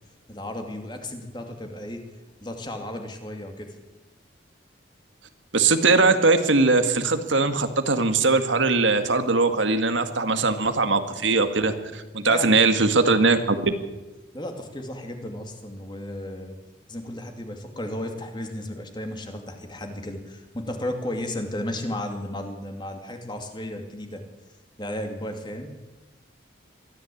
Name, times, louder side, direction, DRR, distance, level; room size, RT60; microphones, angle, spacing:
voice 1, 0.3-2.0 2.4-3.8 12.2-12.7 14.3-16.6 16.9-24.2 24.8-25.7, left 1 dB, 25° left, 5 dB, 2.6 m, -34 dB
voice 2, 5.5-13.7, right 3 dB, 80° right, 8 dB, 1.9 m, -21 dB
22.5 x 14.0 x 8.6 m, 1.1 s
head